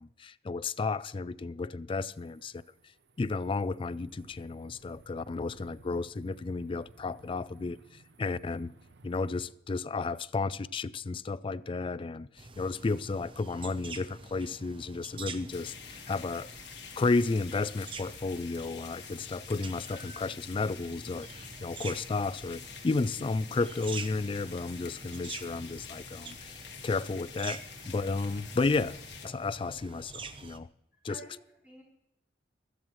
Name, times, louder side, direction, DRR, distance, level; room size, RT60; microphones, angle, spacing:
voice 1, 0.0-2.6 3.2-8.7 9.0-16.5 17.0-30.7 31.0-31.2, left 3 dB, 30° left, 0.3 m, -33 dB
sound 1, 2.1-9.5, right 3 dB, 65° right, 0.7 m, -58 dB
sound 2, 12.4-30.6, right 4 dB, 30° right, 0.7 m, -46 dB
sound 3, 15.5-29.3, left 7 dB, 65° left, 1.6 m, -48 dB
voice 2, 30.9-31.8, right 2 dB, 10° right, 3.8 m, -51 dB
16.0 x 12.5 x 3.1 m
head